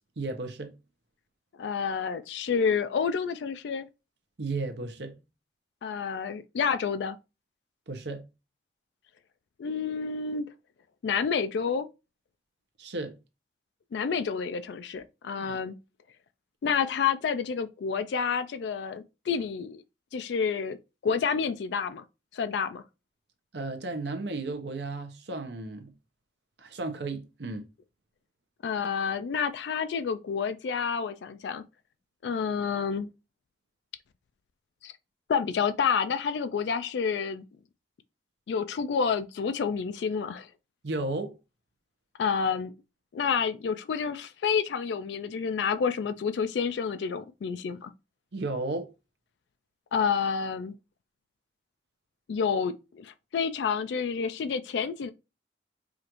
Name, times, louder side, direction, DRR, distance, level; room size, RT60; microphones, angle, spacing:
voice 1, 0.2-0.7 4.4-5.1 7.9-8.2 12.8-13.1 15.4-15.6 23.5-25.9 26.6-27.6 40.8-41.3 48.3-48.9, right 2 dB, 80° right, 0.8 m, -34 dB
voice 2, 1.6-3.9 5.8-7.2 9.6-10.5 11.0-11.9 13.9-15.7 16.6-19.8 20.1-20.8 21.0-22.0 22.3-22.8 28.6-31.6 32.2-33.1 34.8-34.9 35.3-37.4 38.5-40.5 42.2-42.7 43.1-47.9 49.9-50.7 52.3-55.1, left 6 dB, 80° left, 0.3 m, -29 dB
4.9 x 2.5 x 3.0 m
head